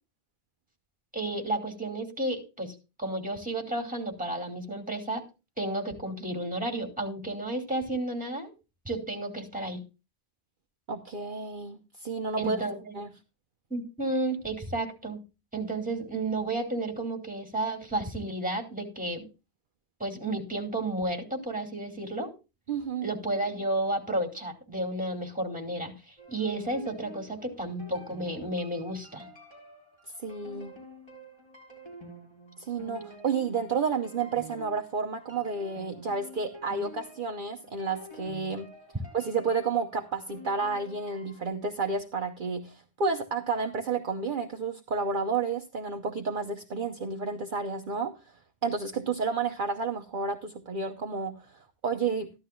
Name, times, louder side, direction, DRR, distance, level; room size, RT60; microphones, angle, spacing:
voice 1, 1.1-5.2 5.6-8.5 8.8-9.8 12.4-12.9 13.7-15.2 15.5-19.2 20.0-22.3 23.0-29.3, right 2 dB, 5° right, 3 dB, 2.5 m, -32 dB
voice 2, 10.9-12.6 12.9-13.1 22.7-23.1 30.2-30.7 32.6-38.7 39.1-48.3 48.6-52.3, right 4 dB, 55° right, 4 dB, 0.9 m, -31 dB
sound 1, 26.2-41.5, equal, 25° left, 4.3 m, -48 dB
14.0 x 12.0 x 2.3 m, 0.29 s
omnidirectional pair, 1.1 m